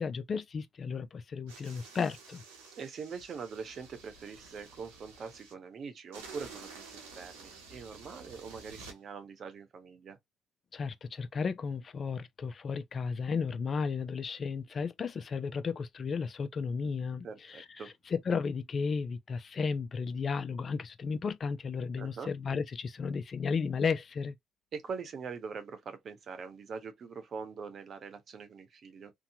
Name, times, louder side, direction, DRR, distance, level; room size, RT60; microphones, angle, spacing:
voice 1, 0.0-2.4 10.7-17.8 18.1-24.4, left 5 dB, 45° left, 0.4 m, -34 dB
sound 1, 1.5-5.5 6.1-9.0, right 4 dB, 90° right, 1.0 m, -51 dB
voice 2, 2.8-10.2 17.2-17.9 22.0-22.3 24.7-29.1, right 5 dB, 50° right, 0.9 m, -43 dB
2.8 x 2.2 x 2.7 m
supercardioid pair, 65°, 0 cm